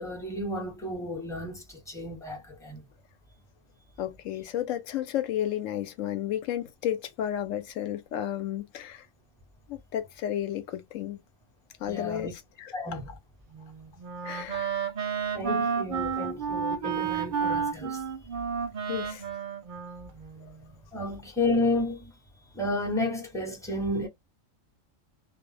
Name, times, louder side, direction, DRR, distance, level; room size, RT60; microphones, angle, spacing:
voice 1, 0.0-2.8 11.8-12.3 12.7-13.1 15.3-18.0 20.9-22.1 22.5-24.1, left 2 dB, 5° left, 0.6 m, -31 dB
voice 2, 4.0-9.1 9.7-11.2 11.8-13.0 14.2-14.7 18.9-19.2 20.4-20.5, left 11 dB, 75° left, 1.0 m, -32 dB
Wind instrument woodwind instrument, 13.5-20.7, right 6 dB, 55° right, 0.6 m, -31 dB
2.3 x 2.0 x 3.1 m
omnidirectional pair, 1.3 m